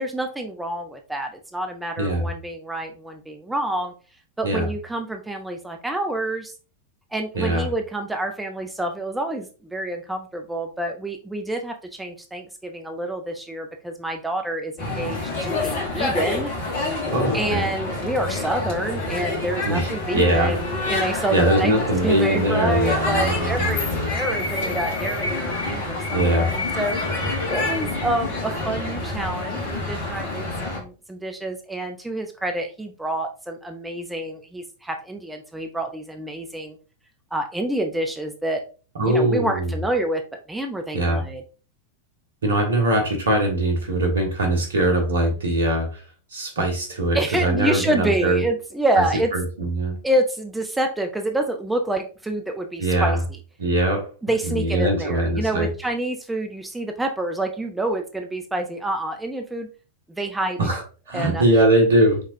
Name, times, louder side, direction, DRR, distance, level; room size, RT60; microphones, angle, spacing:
voice 1, 0.0-3.9 4.4-6.5 7.1-16.5 17.3-21.8 22.0-36.8 37.3-38.6 39.1-40.2 40.5-41.4 47.1-49.3 50.0-53.2 54.2-59.7 60.1-60.8 61.1-61.4, right 1 dB, 5° right, 4 dB, 0.5 m, -27 dB
voice 2, 2.0-2.3 4.4-4.7 7.3-7.7 17.1-17.7 19.6-20.5 21.3-24.1 26.1-26.5 39.0-39.7 40.9-41.2 42.4-46.0 46.3-48.4 49.0-49.1 49.3-49.9 52.8-53.2 53.6-54.1 54.4-55.7 60.6-60.8 61.1-62.2, right 1 dB, 65° right, 2 dB, 1.5 m, -21 dB
sound 1, 14.8-30.8, left 2 dB, 50° left, 1.5 m, -27 dB
5.2 x 3.7 x 2.6 m, 0.36 s
figure-of-eight pair, 90°, 0 cm